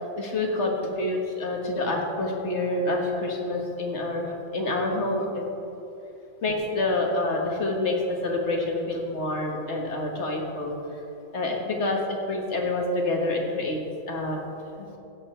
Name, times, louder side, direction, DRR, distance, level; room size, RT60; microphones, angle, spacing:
voice 1, 0.2-5.4 6.4-10.8 11.3-13.8 14.1-14.4, left 2 dB, 70° left, 1 dB, 1.8 m, -27 dB
16.5 x 7.9 x 4.4 m, 2.8 s
omnidirectional pair, 1.2 m